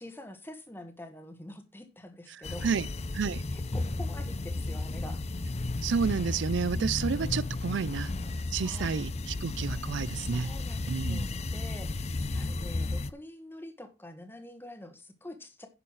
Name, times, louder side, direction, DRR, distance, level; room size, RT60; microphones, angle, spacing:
voice 1, 0.0-2.7 3.5-5.2 7.0-7.4 8.4-9.0 10.2-15.7, left 1 dB, 10° left, 1.5 m, -46 dB
sound 1, 2.4-13.1, left 2 dB, 35° left, 0.5 m, -33 dB
voice 2, 5.8-8.1 8.5-10.5 10.9-11.2, right 6 dB, 70° right, 0.4 m, -30 dB
9.9 x 6.9 x 4.7 m
head